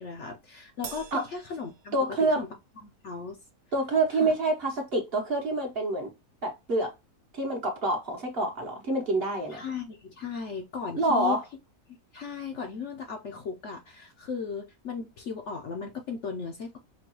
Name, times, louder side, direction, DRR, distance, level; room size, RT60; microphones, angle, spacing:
voice 1, 0.0-2.5 2.8-3.4 4.1-4.3 9.5-11.4 12.1-16.8, left 5 dB, 60° left, 0.8 m, -36 dB
Crash cymbal, 0.8-2.5, right 7 dB, 85° right, 1.3 m, -45 dB
voice 2, 1.9-2.4 3.7-6.1 6.4-6.9 7.3-9.6 11.0-11.4, right 2 dB, 45° right, 1.0 m, -27 dB
5.2 x 2.3 x 2.9 m
omnidirectional pair, 1.7 m